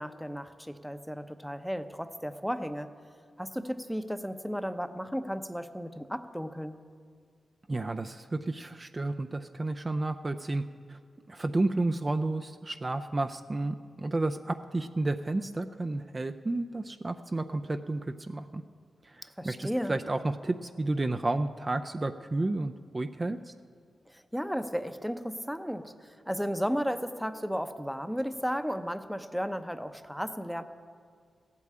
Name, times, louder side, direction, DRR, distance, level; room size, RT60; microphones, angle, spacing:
voice 1, 0.0-2.9 3.4-6.8 19.2-19.9 24.1-30.6, equal, ahead, 9 dB, 0.8 m, -34 dB
voice 2, 7.7-10.6 10.9-11.0 11.3-18.6 19.0-23.5, right 2 dB, 30° right, 7 dB, 0.5 m, -31 dB
15.0 x 8.4 x 8.6 m, 2.1 s
cardioid pair, 65°, 0 cm